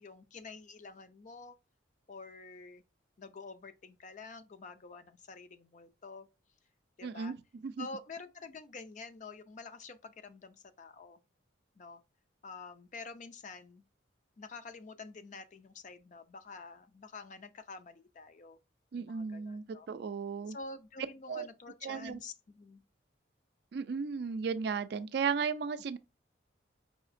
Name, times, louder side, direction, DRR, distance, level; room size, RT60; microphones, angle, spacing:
voice 1, 0.0-1.6 2.1-2.8 3.2-6.3 7.0-7.4 7.8-11.2 11.8-12.0 12.4-13.8 14.4-18.6 18.9-19.9 20.5-22.8, left 4 dB, 40° left, 0.4 m, -48 dB
voice 2, 7.0-7.4 7.6-7.9 18.9-20.6 21.3-21.5 21.8-22.2 23.7-26.0, right 5 dB, 60° right, 0.3 m, -35 dB
4.9 x 2.8 x 2.5 m
head